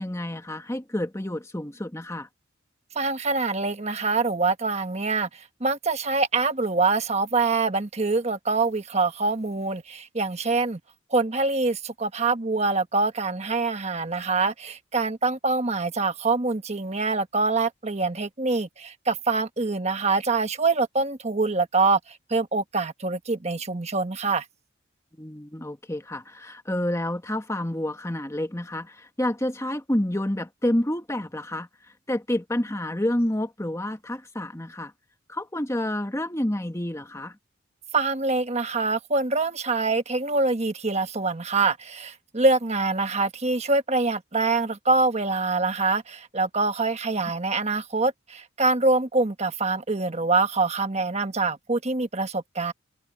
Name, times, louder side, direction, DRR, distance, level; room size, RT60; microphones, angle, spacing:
voice 1, 0.0-2.3 25.2-31.7 32.1-34.9 35.3-37.4, left 1 dB, 15° left, 1.4 m, -29 dB
voice 2, 2.9-10.8 11.1-24.4 37.9-52.7, right 3 dB, 35° right, 1.2 m, -25 dB
head